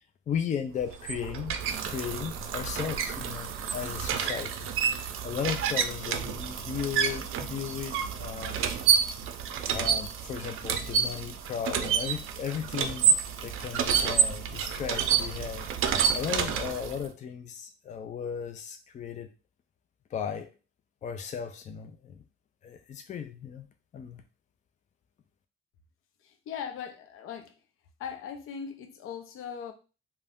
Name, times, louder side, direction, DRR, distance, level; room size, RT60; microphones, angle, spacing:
voice 1, 0.0-1.6 1.8-4.7 5.2-8.7 9.7-13.2 13.4-15.7 16.1-19.3 20.1-20.5 21.0-22.2 22.6-23.7 23.9-24.2, left 8 dB, 35° left, 0.4 m, -36 dB
sound 1, 0.8-17.1, right 7 dB, 80° right, 0.4 m, -29 dB
voice 2, 26.2-27.6 28.0-29.7, left 7 dB, 85° left, 0.5 m, -39 dB
2.5 x 2.2 x 3.4 m
cardioid pair, 150°, 21 cm